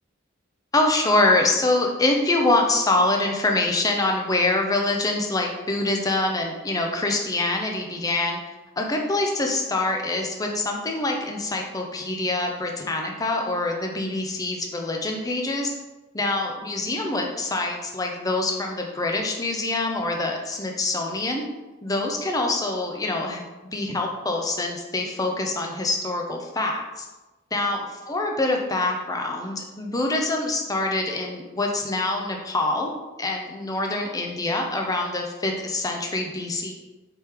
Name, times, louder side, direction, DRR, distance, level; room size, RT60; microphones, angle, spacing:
voice 1, 0.7-8.4 8.8-15.7 16.1-21.4 21.8-23.4 23.7-27.1 27.5-32.9 33.2-36.7, left 2 dB, 15° left, 1 dB, 0.4 m, -25 dB
3.5 x 3.2 x 4.3 m, 1.1 s
head